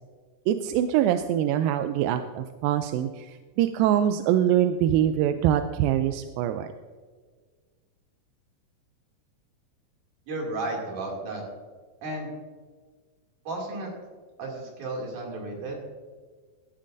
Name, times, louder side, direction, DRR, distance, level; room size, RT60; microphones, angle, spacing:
voice 1, 0.5-6.7, right 11 dB, 90° right, 8 dB, 2.3 m, -24 dB
voice 2, 10.3-11.4 12.0-12.3 13.5-13.9 14.4-15.8, right 2 dB, 65° right, -2 dB, 4.0 m, -33 dB
18.0 x 11.5 x 2.6 m, 1.5 s
omnidirectional pair, 4.0 m